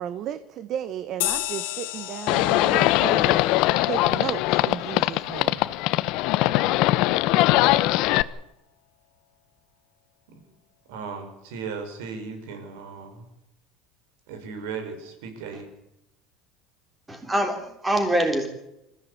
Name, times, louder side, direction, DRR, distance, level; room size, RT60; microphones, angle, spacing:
voice 1, 0.0-3.4 3.8-5.6, right 10 dB, 35° right, 12 dB, 1.1 m, -33 dB
sound 1, 1.2-6.1, left 18 dB, 80° left, 1.5 m, -35 dB
Livestock farm animals working animals, 2.3-8.2, left 17 dB, 50° left, 0.8 m, -21 dB
voice 2, 10.9-13.3 14.3-15.7, right 5 dB, 80° right, 6 dB, 5.9 m, -36 dB
voice 3, 17.1-18.5, right 1 dB, 10° right, 5 dB, 3.6 m, -24 dB
26.0 x 15.0 x 8.4 m, 0.86 s
cardioid pair, 175°, 0 cm